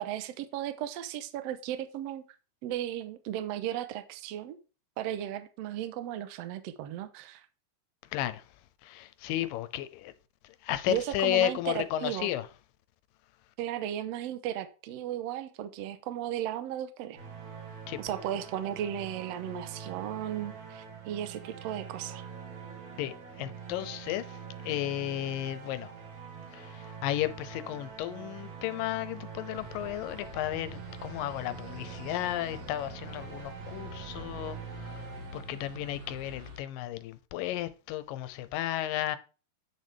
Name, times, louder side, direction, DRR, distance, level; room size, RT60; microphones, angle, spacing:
voice 1, 0.0-2.2 2.6-4.6 5.0-7.5 10.9-12.3 13.6-17.2 18.0-22.2, right 11 dB, 85° right, 1.4 m, -35 dB
voice 2, 8.1-8.4 8.8-10.1 10.6-12.5 17.9-18.0 23.0-24.3 24.6-25.9 26.5-34.6 34.8-35.1 35.3-39.2, left 13 dB, 85° left, 2.3 m, -33 dB
sound 1, 17.2-36.1, right 6 dB, 60° right, 3.3 m, -45 dB
sound 2, 29.5-36.6, equal, 45° right, 1.3 m, -46 dB
8.7 x 6.6 x 3.4 m
omnidirectional pair, 4.0 m